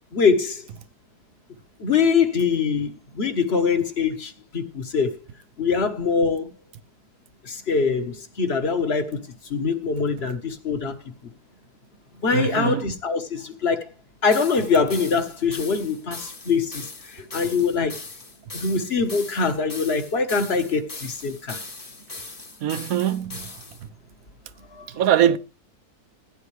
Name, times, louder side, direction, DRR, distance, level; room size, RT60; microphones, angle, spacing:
voice 1, 0.1-0.6 1.8-5.1 5.6-6.5 7.4-9.2 9.5-11.0 12.2-13.9 14.2-18.0 18.5-21.6 24.7-24.9, left 5 dB, 45° left, 1.5 m, -23 dB
voice 2, 12.3-12.9 22.6-23.5 24.9-25.4, right 10 dB, 70° right, 1.2 m, -22 dB
sound 1, 14.3-23.8, left 3 dB, 25° left, 1.3 m, -39 dB
16.0 x 9.6 x 3.3 m
omnidirectional pair, 1.6 m